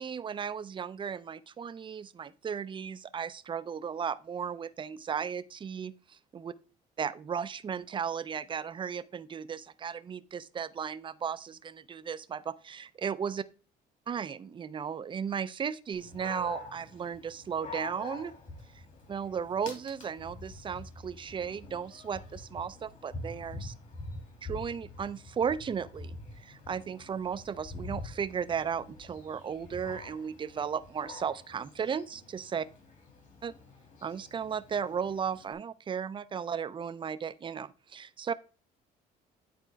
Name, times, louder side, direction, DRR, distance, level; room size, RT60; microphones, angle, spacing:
voice 1, 0.0-6.5 7.0-13.4 14.1-18.3 18.7-18.8 19.1-23.7 24.4-32.7 33.4-33.5 34.0-38.3, right 7 dB, 30° right, 0.4 m, -35 dB
Dog, 15.9-35.5, left 2 dB, 45° left, 2.3 m, -46 dB
10.0 x 4.3 x 3.4 m
cardioid pair, 110°, 17 cm